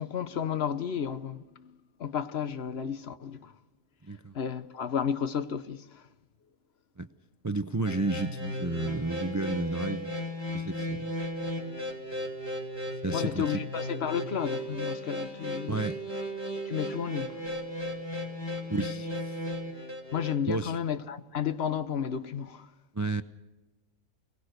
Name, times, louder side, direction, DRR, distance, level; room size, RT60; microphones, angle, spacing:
voice 1, 0.0-1.7 2.0-3.5 4.3-6.0 13.1-15.8 16.6-17.5 20.1-22.7, left 8 dB, 55° left, 1.1 m, -32 dB
voice 2, 7.4-10.1 10.5-11.0 13.0-13.6 15.7-16.0 18.7-19.4 20.5-20.8 22.9-23.2, right 2 dB, 25° right, 0.3 m, -32 dB
sound 1, 7.8-20.3, left 1 dB, 20° left, 2.7 m, -35 dB
24.0 x 18.5 x 6.5 m
omnidirectional pair, 1.4 m